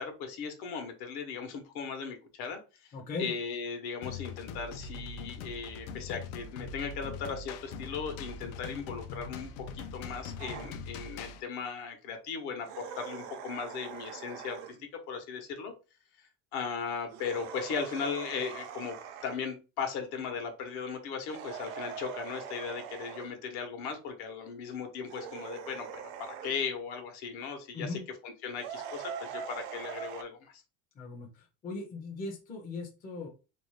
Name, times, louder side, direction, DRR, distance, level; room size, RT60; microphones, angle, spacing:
voice 1, 0.0-2.9 3.2-15.7 16.2-18.9 19.2-25.9 26.2-30.6, left 6 dB, 65° left, 5 dB, 0.9 m, -37 dB
voice 2, 2.9-3.3 27.7-28.0 31.0-33.3, left 3 dB, 20° left, 0 dB, 0.5 m, -39 dB
sound 1, 4.0-11.4, left 4 dB, 85° left, 0.6 m, -42 dB
sound 2, 10.4-10.8 12.6-14.8 17.1-19.5 21.2-23.3 25.0-26.6 28.6-30.2, right 8 dB, 75° right, 0.6 m, -42 dB
2.6 x 2.1 x 3.0 m, 0.31 s
cardioid pair, 160°, 41 cm